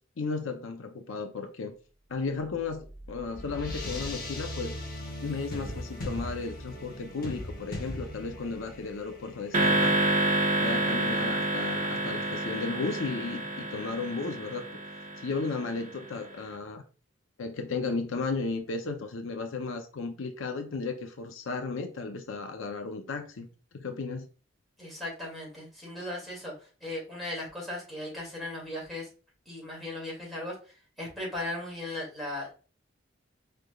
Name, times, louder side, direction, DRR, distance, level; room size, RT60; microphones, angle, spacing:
voice 1, 0.2-1.7 2.1-4.8 5.2-10.0 10.6-14.7 15.2-16.8 17.4-23.5 23.7-24.3, left 4 dB, 75° left, 0.5 m, -34 dB
sound 1, 2.6-13.2, left 1 dB, 45° left, 1.0 m, -40 dB
sound 2, 9.5-15.9, right 1 dB, 40° right, 0.8 m, -28 dB
voice 2, 24.8-26.5 26.8-29.1 29.5-30.6 31.0-32.5, left 1 dB, ahead, 2.1 m, -37 dB
5.0 x 3.3 x 2.2 m
head